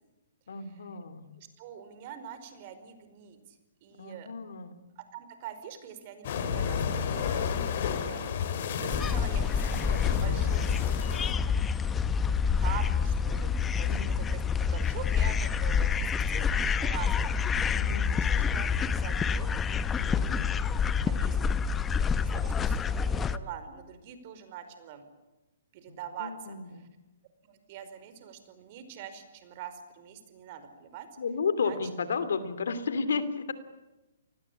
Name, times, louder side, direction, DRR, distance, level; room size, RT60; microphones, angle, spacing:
voice 1, 0.5-1.2 4.0-4.8 13.9-14.2 17.7-18.1 20.0-20.5 25.9-26.8 31.2-33.5, left 5 dB, 75° left, 13 dB, 2.7 m, -33 dB
voice 2, 1.4-4.3 5.0-8.3 8.7-10.9 11.3-11.5 11.8-11.9 12.6-17.6 17.9-20.2 20.5-20.6 21.0-21.7 22.2-22.8 23.0-25.0 25.7-26.9 27.4-31.1 31.6-31.8, right 9 dB, 45° right, 10 dB, 4.9 m, -44 dB
sound 1, 6.2-11.3, left 7 dB, 50° left, 3.7 m, -32 dB
sound 2, 8.9-23.4, left 6 dB, 15° left, 1.0 m, -27 dB
28.5 x 20.0 x 8.6 m, 1.1 s
hypercardioid pair, 135°, 0 cm